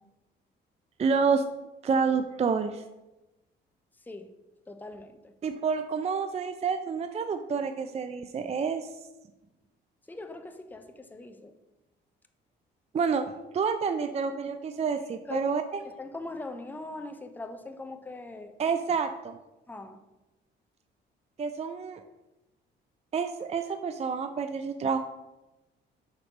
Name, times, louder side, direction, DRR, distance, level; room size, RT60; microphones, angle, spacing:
voice 1, 1.0-1.4 1.8-2.8 5.4-8.9 12.9-15.8 18.6-19.4 21.4-22.0 23.1-25.0, right 5 dB, 30° right, 8 dB, 0.4 m, -28 dB
voice 2, 4.7-5.3 10.1-11.5 15.3-15.5 15.8-18.5 19.7-20.0, left 2 dB, 10° left, 7 dB, 0.6 m, -41 dB
5.4 x 3.9 x 6.0 m, 1.0 s
cardioid pair, 90°, 20 cm